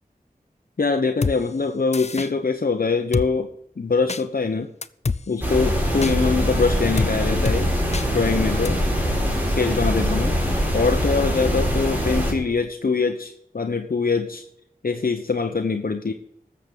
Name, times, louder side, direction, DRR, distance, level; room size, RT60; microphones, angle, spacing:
voice 1, 0.8-3.5 3.8-4.7 5.3-7.7 8.1-8.8 9.5-14.4 14.8-16.1, left 4 dB, 70° left, 4 dB, 1.0 m, -23 dB
Drum kit, 1.2-1.4 1.9-2.3 3.1-3.3 4.1-4.2 4.8-5.2 6.0-6.1 7.0-7.1 7.5-7.6 7.9-8.1 8.7-8.8, left 4 dB, 45° left, 0.6 m, -25 dB
sound 1, 5.4-12.3, equal, 10° right, 4.6 m, -23 dB
13.0 x 7.4 x 6.9 m, 0.73 s
wide cardioid pair, 50°, 15 cm